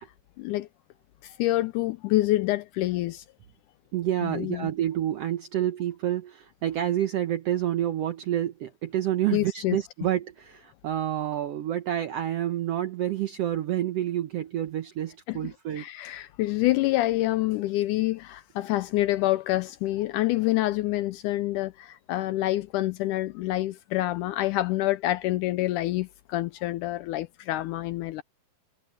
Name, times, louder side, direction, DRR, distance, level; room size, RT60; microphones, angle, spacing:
voice 1, 0.4-0.7 1.2-3.2 4.2-4.7 9.3-9.8 15.3-15.4 15.8-28.2, left 16 dB, 85° left, 1.8 m, -27 dB
voice 2, 3.9-15.9, right 12 dB, 80° right, 1.4 m, -28 dB
omnidirectional pair, 4.1 m